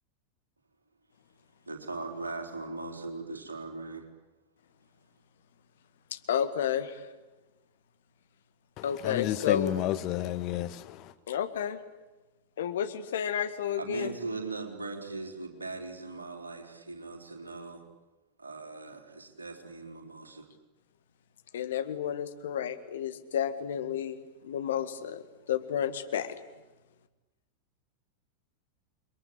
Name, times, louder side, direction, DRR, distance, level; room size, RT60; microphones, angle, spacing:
voice 1, 1.7-4.1 13.8-17.8 18.4-20.5, right 3 dB, 75° right, 4.0 m, -39 dB
voice 2, 6.1-7.0 8.8-9.7 11.3-11.8 12.6-14.1 21.5-25.2 25.5-26.4, left 9 dB, 60° left, 1.9 m, -31 dB
voice 3, 8.8-11.1, left 14 dB, 40° left, 1.6 m, -31 dB
29.0 x 23.0 x 8.6 m
figure-of-eight pair, 90°, 0 cm